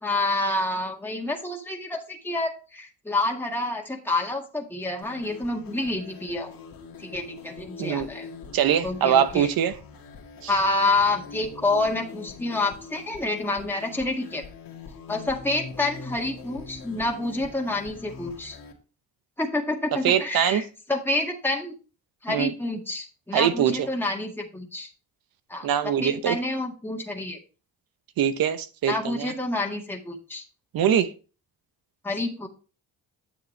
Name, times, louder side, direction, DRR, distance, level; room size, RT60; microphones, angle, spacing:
voice 1, 0.0-6.5 7.0-8.3 8.8-9.5 10.5-14.4 15.1-18.6 19.4-21.7 22.2-24.9 25.5-25.7 26.0-27.4 28.9-30.4 32.0-32.5, left 2 dB, 5° left, 1.8 m, -28 dB
sound 1, 5.0-18.7, left 4 dB, 65° left, 1.9 m, -43 dB
voice 2, 8.5-9.8 10.4-10.6 19.9-20.6 22.3-22.5 23.3-23.9 25.6-26.4 28.2-29.3 30.7-31.1, right 9 dB, 75° right, 0.9 m, -23 dB
9.2 x 6.7 x 3.3 m
cardioid pair, 75°, 36 cm